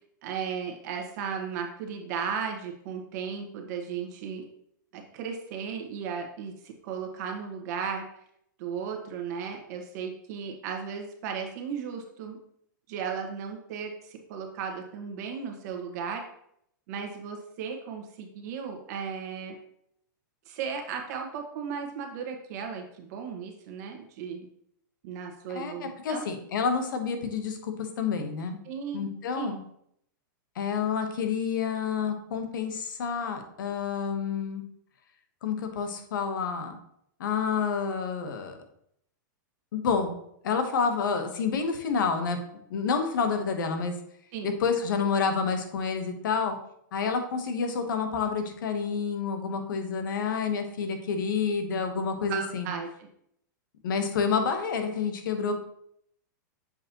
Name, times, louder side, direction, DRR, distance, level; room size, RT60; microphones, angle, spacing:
voice 1, 0.2-4.4 4.9-8.0 8.6-12.4 12.9-16.2 16.9-19.5 20.4-24.4 25.0-26.2 28.6-29.1 29.3-29.5 44.3-44.5 52.3-52.9, right 6 dB, 55° right, 3 dB, 1.5 m, -35 dB
voice 2, 25.5-28.6 28.9-29.6 30.5-34.6 35.4-36.8 37.2-38.6 39.7-40.2 40.4-42.4 42.7-43.9 44.4-46.6 46.9-52.7 53.8-55.5, left 5 dB, 75° left, 7 dB, 1.2 m, -29 dB
7.1 x 5.3 x 3.0 m, 0.71 s
hypercardioid pair, 135°, 11 cm